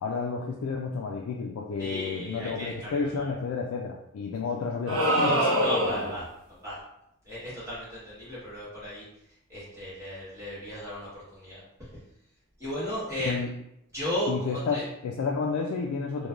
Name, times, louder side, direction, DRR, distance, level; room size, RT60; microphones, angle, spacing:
voice 1, 0.0-5.5 13.3-13.5 14.3-16.3, left 5 dB, 65° left, 0 dB, 0.3 m, -31 dB
voice 2, 1.8-3.3 5.6-6.8 7.2-9.0 9.5-11.6 12.6-13.5 13.9-14.8, equal, 15° right, -10 dB, 1.3 m, -35 dB
sound 1, 4.9-6.2, equal, 75° right, 1.0 m, -24 dB
3.1 x 2.2 x 2.4 m, 0.80 s
head